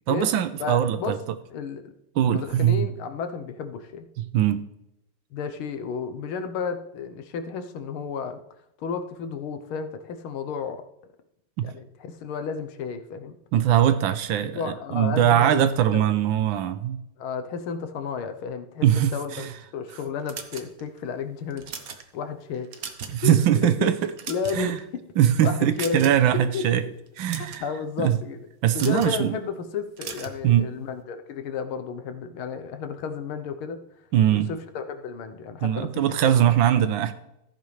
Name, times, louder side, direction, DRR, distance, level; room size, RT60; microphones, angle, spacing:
voice 1, 0.1-1.2 2.2-2.9 4.2-4.6 11.6-11.7 13.5-17.0 18.8-19.5 23.1-24.1 24.5-24.8 25.2-26.8 27.2-27.6 28.0-28.2 28.6-29.3 30.4-30.7 34.1-34.5 35.6-37.1, right 10 dB, 75° right, 1.4 m, -21 dB
voice 2, 0.6-1.2 1.5-1.9 2.2-4.1 5.3-8.4 8.8-10.9 11.6-13.4 14.4-16.0 17.2-19.5 19.7-21.7 22.1-22.9 23.2-23.4 23.6-23.9 24.3-25.0 25.4-26.1 26.5-26.7 27.6-28.5 28.8-33.8 34.3-36.8, left 6 dB, 85° left, 1.8 m, -32 dB
sound 1, 20.3-21.0 21.5-22.0 22.5-23.2 23.5-23.7 24.1-24.8 25.8-26.3 27.1-27.6 28.7-29.2 30.0-30.4, right 6 dB, 50° right, 1.2 m, -37 dB
14.5 x 9.4 x 3.3 m
omnidirectional pair, 2.3 m